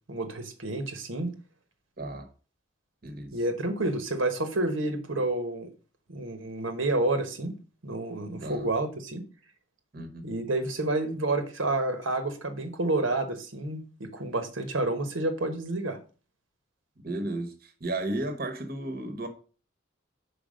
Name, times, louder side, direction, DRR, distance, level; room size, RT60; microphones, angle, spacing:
voice 1, 0.1-1.3 3.3-5.7 6.1-7.5 7.8-9.2 10.2-16.0, right 2 dB, 75° right, 1.2 m, -29 dB
voice 2, 2.0-2.3 3.0-3.4 8.4-8.7 9.9-10.3 17.0-19.3, right 2 dB, 45° right, 1.1 m, -34 dB
5.1 x 4.9 x 6.2 m
head